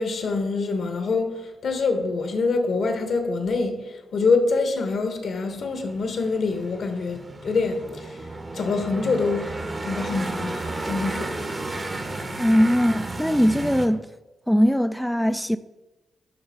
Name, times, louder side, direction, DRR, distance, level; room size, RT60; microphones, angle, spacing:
voice 1, 0.0-8.2 8.5-11.4, left 4 dB, 65° left, 1.0 m, -25 dB
sound 1, 5.5-13.9, right 2 dB, 35° right, 1.0 m, -33 dB
voice 2, 12.4-14.1 14.5-15.6, equal, ahead, 0.3 m, -20 dB
10.5 x 3.5 x 3.5 m
supercardioid pair, 50°, 0 cm